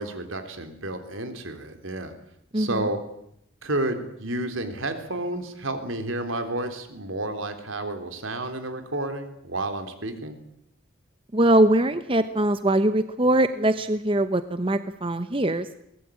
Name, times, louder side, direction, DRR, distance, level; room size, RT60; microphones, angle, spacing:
voice 1, 0.0-2.1 2.6-3.0 3.6-10.4, right 2 dB, 80° right, 7 dB, 3.6 m, -31 dB
voice 2, 2.5-2.9 11.3-15.7, right 1 dB, 25° right, 11 dB, 0.9 m, -22 dB
23.5 x 19.0 x 8.6 m, 0.76 s
head